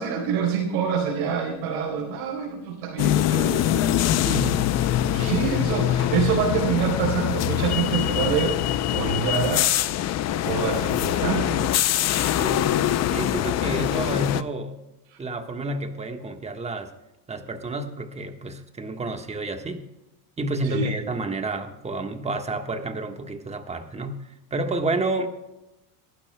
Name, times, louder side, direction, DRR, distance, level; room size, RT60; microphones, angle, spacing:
voice 1, 0.0-4.0 5.1-9.7 10.4-11.7 20.6-20.9, right 6 dB, 85° right, -2 dB, 4.3 m, -26 dB
sound 1, 3.0-14.4, left 12 dB, 40° left, 0.6 m, -23 dB
voice 2, 4.1-4.7 5.2-5.4 12.4-12.8 13.1-14.8 15.2-16.9 17.3-19.8 20.4-25.3, right 2 dB, 15° right, 6 dB, 1.4 m, -30 dB
24.5 x 11.5 x 2.2 m, 0.94 s
supercardioid pair, 120°, 41 cm